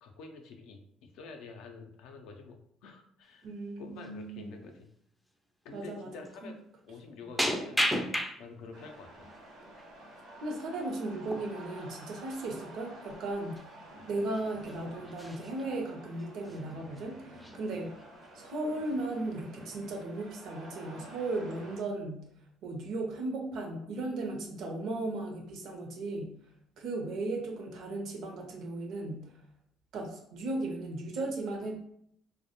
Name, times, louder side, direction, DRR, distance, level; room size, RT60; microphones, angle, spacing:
voice 1, 0.0-3.5 3.8-4.9 5.6-6.6 6.8-7.8 8.4-9.3, left 4 dB, 75° left, 4 dB, 0.4 m, -48 dB
sound 1, 3.2-3.5 3.9-4.1 4.7-4.8 5.8-5.9 6.2-6.4 7.4-8.7 9.2-9.8 11.3-11.5 11.8-11.9 12.3-12.5 13.2-13.3 13.6-13.8 14.3-14.8 15.0-15.7 16.2-16.6 17.0-17.1 17.3-18.1 18.5-18.9, equal, 5° left, 0.3 m, -34 dB
voice 2, 3.4-4.5 5.7-6.1 6.4-6.5 10.4-13.7 14.1-17.9 18.3-22.2 22.6-26.3 26.8-29.3 29.9-31.8, right 2 dB, 70° right, 3 dB, 0.6 m, -36 dB
sound 2, 8.7-21.8, right 1 dB, 90° right, 0.9 m, -50 dB
2.1 x 2.1 x 2.8 m, 0.69 s
supercardioid pair, 80°, 0 cm